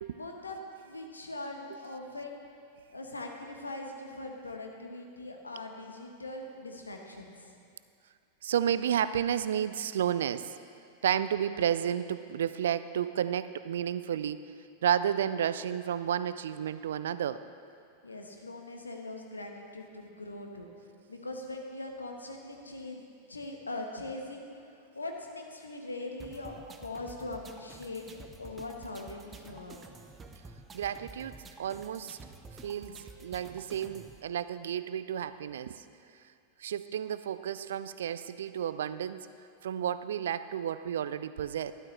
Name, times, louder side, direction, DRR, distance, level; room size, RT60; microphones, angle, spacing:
voice 1, 0.1-2.4 2.9-7.6 18.0-20.7 21.1-23.0 23.3-26.5 26.8-28.0 28.4-29.9, left 2 dB, 80° left, 2 dB, 1.1 m, -41 dB
voice 2, 8.4-10.5 11.0-14.5 14.8-17.4 30.7-32.2 32.6-35.8 36.6-39.3 39.6-41.7, right 9 dB, 60° right, 14 dB, 0.3 m, -31 dB
sound 1, 26.2-34.2, right 3 dB, 20° right, 0.7 m, -50 dB
12.5 x 11.5 x 3.2 m, 2.5 s
figure-of-eight pair, 90°, 0 cm